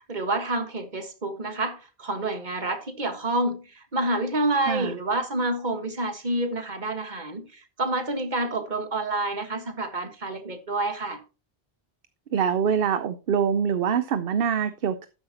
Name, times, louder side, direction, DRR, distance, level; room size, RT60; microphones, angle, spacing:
voice 1, 0.1-11.2, right 2 dB, 45° right, 1.8 m, -28 dB
voice 2, 12.3-15.1, right 7 dB, 65° right, 0.9 m, -24 dB
13.0 x 9.6 x 2.9 m
omnidirectional pair, 1.1 m